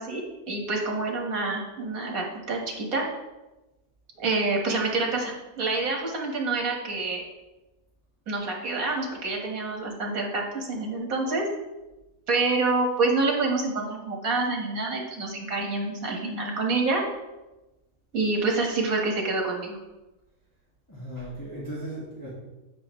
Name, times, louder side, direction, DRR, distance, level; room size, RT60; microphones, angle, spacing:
voice 1, 0.0-3.1 4.2-7.3 8.3-11.5 12.3-17.0 18.1-19.8, right 3 dB, 75° right, 0 dB, 2.0 m, -27 dB
voice 2, 20.9-22.3, right 1 dB, 15° left, -8 dB, 1.8 m, -36 dB
8.3 x 7.6 x 3.1 m, 1.0 s
omnidirectional pair, 1.5 m